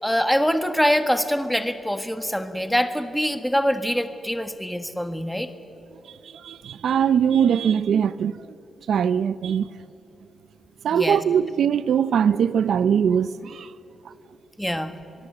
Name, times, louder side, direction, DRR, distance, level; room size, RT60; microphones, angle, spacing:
voice 1, 0.0-5.5 10.9-11.2 14.6-14.9, equal, ahead, 1.4 m, -24 dB
voice 2, 6.2-8.4 8.9-9.7 10.8-13.7, right 8 dB, 75° right, 0.5 m, -21 dB
23.5 x 22.5 x 7.8 m
wide cardioid pair, 125°, 0 cm